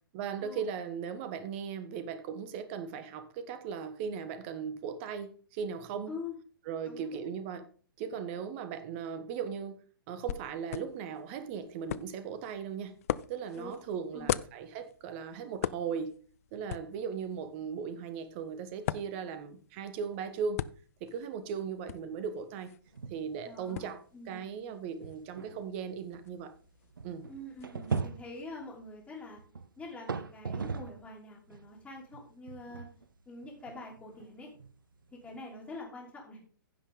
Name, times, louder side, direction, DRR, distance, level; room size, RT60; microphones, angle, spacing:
voice 1, 0.1-6.1 6.7-7.7 8.0-9.8 10.1-12.9 13.3-16.2 16.5-20.6 21.0-22.7 23.1-26.5 27.0-27.2, right 6 dB, 30° right, 1.3 m, -38 dB
voice 2, 6.8-7.2 13.6-13.7 14.1-14.3 23.4-24.5 27.3-29.4 29.8-32.8 33.3-34.5 35.1-36.4, left 2 dB, 10° left, 3.4 m, -45 dB
sound 1, 10.3-28.0, left 11 dB, 40° left, 0.4 m, -42 dB
sound 2, 22.9-23.4 23.7-23.8 24.4-24.5 25.0-31.1 31.5-35.8, right 5 dB, 65° right, 0.8 m, -40 dB
15.5 x 5.8 x 3.8 m
figure-of-eight pair, 120°, 12 cm